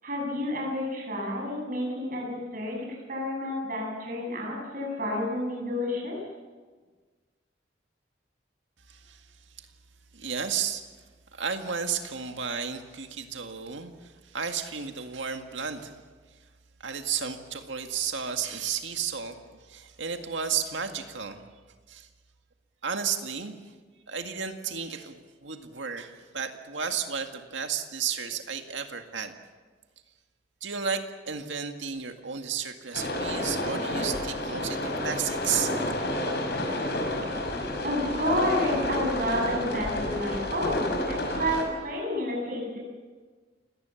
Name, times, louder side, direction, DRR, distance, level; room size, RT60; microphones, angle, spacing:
voice 1, 0.0-2.8 3.1-6.2 37.8-42.8, left 1 dB, 50° right, -1 dB, 7.3 m, -30 dB
voice 2, 8.9-9.7 10.1-10.8 11.3-15.9 16.8-21.4 21.9-22.1 22.8-23.6 24.1-29.3 30.6-35.7, right 7 dB, 85° right, 5 dB, 1.9 m, -33 dB
sound 1, 32.9-41.6, left 1 dB, 60° left, 5.8 m, -30 dB
29.5 x 18.0 x 7.2 m, 1.4 s
head